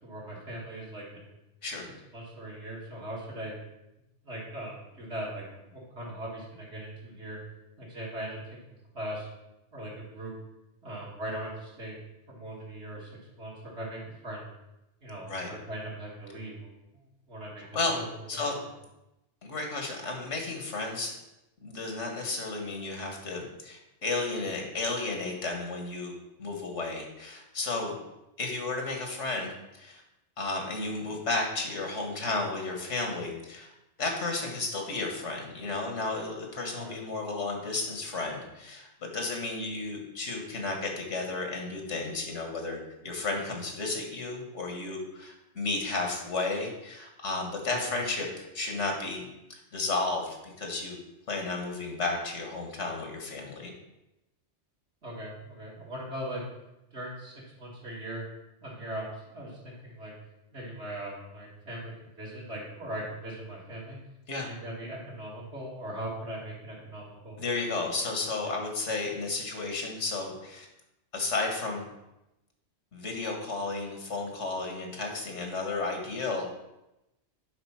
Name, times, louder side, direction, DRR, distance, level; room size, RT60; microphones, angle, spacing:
voice 1, 0.0-1.3 2.1-3.5 4.2-7.4 7.8-8.4 8.6-9.3 9.7-10.3 10.8-12.0 12.3-13.1 13.4-14.5 15.0-16.7 17.3-18.7 36.8-37.0 47.7-47.9 55.0-56.4 56.9-58.2 58.6-60.1 60.5-64.0 64.3-67.4 68.4-68.5, right 1 dB, 70° right, -5 dB, 2.6 m, -40 dB
voice 2, 19.4-21.1 21.6-26.1 26.4-28.0 28.4-30.0 30.4-33.7 34.0-51.0 51.3-53.7 64.3-64.5 67.4-70.7 71.1-71.9 72.9-76.5, left 3 dB, 90° left, 2 dB, 1.9 m, -33 dB
9.6 x 4.0 x 5.8 m, 0.92 s
omnidirectional pair, 1.2 m